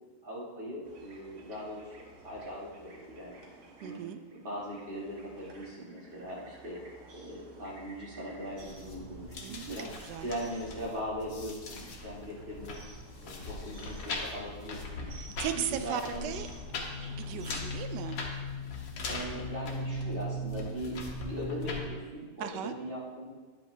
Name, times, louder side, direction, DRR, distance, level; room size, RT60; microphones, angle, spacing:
voice 1, 0.2-1.8 2.1-3.4 3.8-4.0 4.3-6.8 7.1-9.9 10.2-12.8 13.2-15.0 15.5-16.3 17.3-17.6 19.1-23.3, equal, 35° right, -5 dB, 1.8 m, -40 dB
sound 1, 0.8-17.6, right 2 dB, 50° right, 1.3 m, -54 dB
voice 2, 3.8-4.2 9.4-10.3 15.1-16.5 17.1-18.2 22.4-22.7, right 9 dB, 85° right, 9 dB, 1.2 m, -37 dB
sound 2, 8.6-21.8, left 2 dB, 90° left, 1.7 m, -39 dB
9.5 x 7.6 x 2.7 m, 1.4 s
omnidirectional pair, 1.8 m